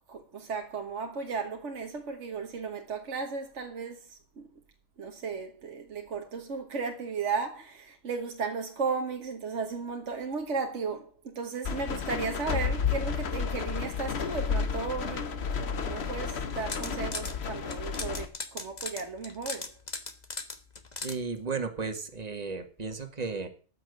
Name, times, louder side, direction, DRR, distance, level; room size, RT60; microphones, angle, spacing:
voice 1, 0.1-4.5 5.0-19.7, right 5 dB, 60° right, 1.6 m, -35 dB
sound 1, 11.6-18.3, left 6 dB, 50° left, 1.3 m, -32 dB
sound 2, 16.4-17.3 17.7-21.2, left 3 dB, 30° left, 1.4 m, -38 dB
voice 2, 21.0-23.5, right 4 dB, 30° right, 1.8 m, -34 dB
13.5 x 6.4 x 8.0 m
omnidirectional pair, 1.4 m